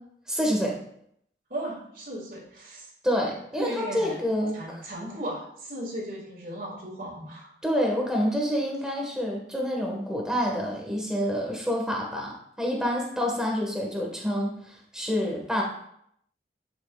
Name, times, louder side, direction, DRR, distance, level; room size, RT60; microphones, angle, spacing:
voice 1, 0.3-0.8 3.0-4.8 7.6-15.6, equal, 5° right, -1 dB, 1.4 m, -28 dB
voice 2, 1.5-2.9 3.5-4.2 4.5-7.5, right 1 dB, 50° right, -3 dB, 2.1 m, -36 dB
10.5 x 5.9 x 2.4 m, 0.71 s
head